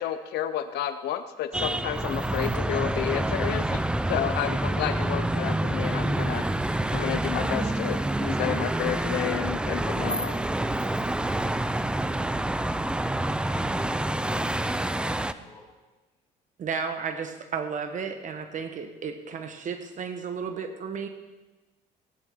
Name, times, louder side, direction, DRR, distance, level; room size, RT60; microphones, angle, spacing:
voice 1, 0.0-6.4 6.9-10.4, left 11 dB, 75° left, 10 dB, 0.7 m, -31 dB
sound 1, 1.5-15.3, right 1 dB, 5° right, 0.5 m, -27 dB
voice 2, 13.4-15.7, left 2 dB, 15° left, -3 dB, 5.3 m, -48 dB
voice 3, 16.6-21.1, right 6 dB, 50° right, 7 dB, 1.2 m, -33 dB
17.5 x 12.0 x 3.7 m, 1.1 s
cardioid pair, 110°, 17 cm